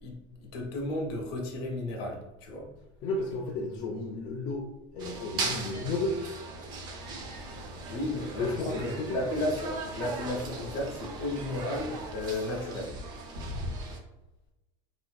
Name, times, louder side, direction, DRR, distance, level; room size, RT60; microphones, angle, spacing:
voice 1, 0.0-2.7 7.9-12.9, left 1 dB, 55° left, 1 dB, 0.8 m, -34 dB
voice 2, 3.0-4.7 4.9-6.1 8.4-9.2, left 2 dB, 35° left, -2 dB, 0.4 m, -32 dB
sound 1, 5.0-14.0, right 3 dB, 30° right, 0.4 m, -39 dB
sound 2, 7.0-12.7, left 1 dB, 80° right, 1.0 m, -46 dB
3.9 x 2.5 x 2.2 m, 0.99 s
cardioid pair, 175°, 15 cm